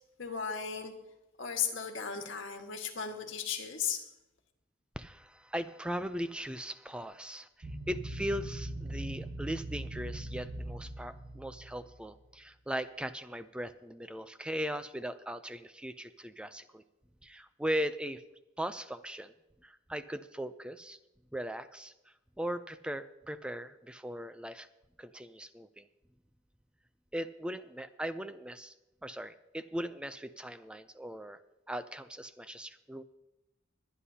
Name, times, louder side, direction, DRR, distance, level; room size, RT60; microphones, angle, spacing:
voice 1, 0.2-0.9 1.4-4.0, left 7 dB, 75° left, 4 dB, 1.6 m, -35 dB
voice 2, 5.0-16.8 17.2-18.2 18.6-19.3 19.6-21.0 21.3-24.7 25.0-25.9 27.1-28.7 29.0-31.4 31.7-33.0, equal, 5° right, 12 dB, 0.4 m, -39 dB
sound 1, 7.6-12.3, right 1 dB, 45° right, 1.6 m, -41 dB
22.5 x 10.0 x 2.8 m, 0.96 s
head